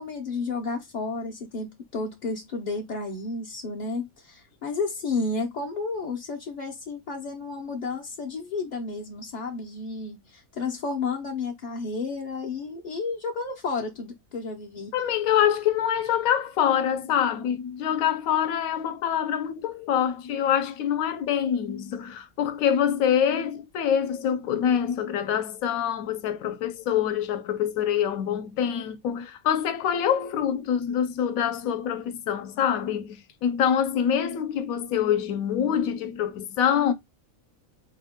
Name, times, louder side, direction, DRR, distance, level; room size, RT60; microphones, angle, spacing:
voice 1, 0.0-14.9, left 3 dB, 55° left, 0.5 m, -32 dB
voice 2, 14.9-36.9, left 9 dB, 75° left, 1.0 m, -25 dB
4.2 x 2.2 x 3.5 m
omnidirectional pair, 1.5 m